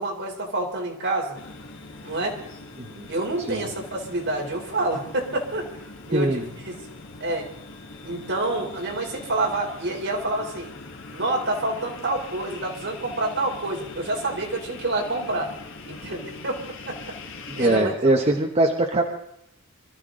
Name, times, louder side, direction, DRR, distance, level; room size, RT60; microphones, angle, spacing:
voice 1, 0.0-1.4 2.0-2.4 3.1-5.7 6.1-6.7 7.2-7.5 8.0-10.7 11.1-15.5 15.9-17.2 17.6-17.9, right 2 dB, 60° right, 0 dB, 3.6 m, -28 dB
sound 1, 1.3-17.8, left 3 dB, 60° left, 1.7 m, -42 dB
voice 2, 6.1-6.5 17.6-19.0, right 2 dB, 30° right, 2 dB, 1.1 m, -22 dB
25.0 x 13.5 x 3.8 m, 0.74 s
head